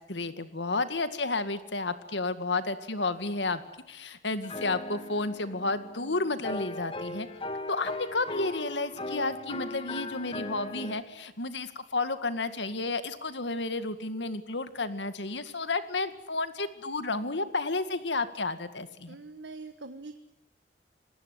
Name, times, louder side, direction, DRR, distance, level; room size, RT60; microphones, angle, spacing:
voice 1, 0.1-3.6 3.9-7.3 7.7-19.1, left 3 dB, 80° left, 11 dB, 2.1 m, -31 dB
sound 1, 4.4-11.0, left 2 dB, 30° left, 2.2 m, -38 dB
voice 2, 19.1-20.2, right 3 dB, 75° right, 9 dB, 1.4 m, -43 dB
27.0 x 19.5 x 9.9 m, 0.80 s
head